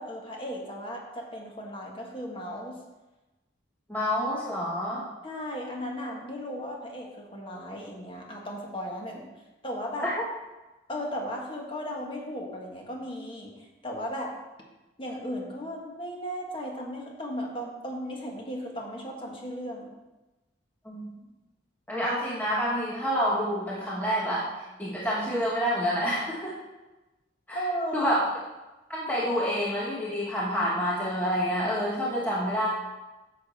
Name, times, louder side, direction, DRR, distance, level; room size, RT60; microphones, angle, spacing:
voice 1, 0.0-2.8 5.2-9.3 9.6-10.1 10.9-14.4 15.0-19.9 27.5-28.1, equal, 25° left, -1 dB, 1.5 m, -36 dB
voice 2, 3.9-5.0 10.0-10.1 20.8-21.1 21.9-24.5 24.8-26.5 27.5-27.7 27.9-28.2 28.9-32.7, equal, 10° left, -6 dB, 1.0 m, -28 dB
10.0 x 7.0 x 4.2 m, 1.1 s
head